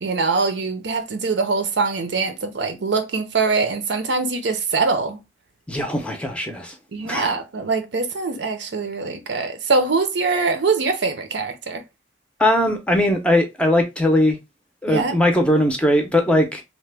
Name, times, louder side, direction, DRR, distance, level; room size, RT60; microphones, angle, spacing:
voice 1, 0.0-5.2 6.9-11.8 14.9-15.2, right 4 dB, 80° right, 0.6 m, -23 dB
voice 2, 5.7-6.7 7.0-7.3 12.4-14.4 14.8-16.6, left 1 dB, 5° left, 0.5 m, -19 dB
2.9 x 2.1 x 3.3 m
head